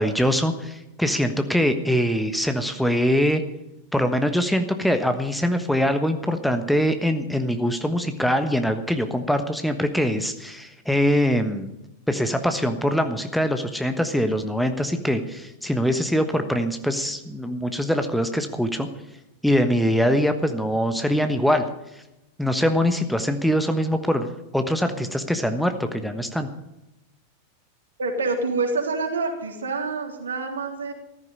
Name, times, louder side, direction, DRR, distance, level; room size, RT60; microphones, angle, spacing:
voice 1, 0.0-3.4 3.9-11.7 12.1-18.9 19.4-21.6 22.4-26.5, equal, ahead, 7 dB, 1.3 m, -23 dB
voice 2, 28.0-30.9, right 3 dB, 70° right, 2 dB, 3.3 m, -27 dB
15.0 x 14.0 x 5.5 m, 0.91 s
figure-of-eight pair, 90°, 0 cm